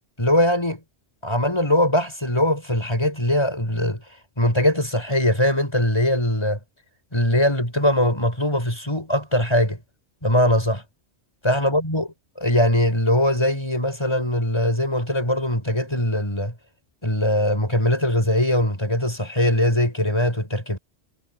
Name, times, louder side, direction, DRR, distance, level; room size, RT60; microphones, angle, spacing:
voice 1, 0.2-0.8 1.2-4.0 4.4-6.6 7.1-9.8 10.2-10.8 11.4-16.5 17.0-20.8, left 1 dB, 25° left, 6.8 m, -21 dB
omnidirectional pair, 1.1 m